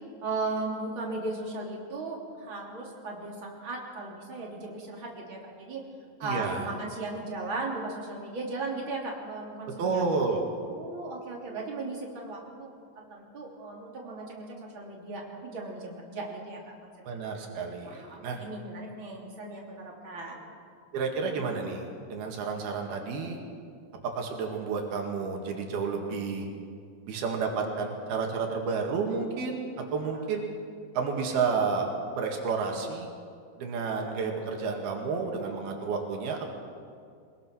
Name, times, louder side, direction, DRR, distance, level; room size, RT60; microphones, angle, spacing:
voice 1, 0.2-5.8 6.2-10.0 10.7-16.9 17.9-20.5 30.0-30.2, right 3 dB, 35° right, -2 dB, 3.7 m, -37 dB
voice 2, 6.2-6.7 9.8-10.4 17.1-18.4 20.9-23.4 24.2-26.5 27.1-29.6 29.9-30.4 30.9-33.1 33.6-36.5, right 5 dB, 85° right, 2 dB, 3.9 m, -31 dB
23.5 x 21.5 x 6.2 m, 2.3 s
omnidirectional pair, 4.3 m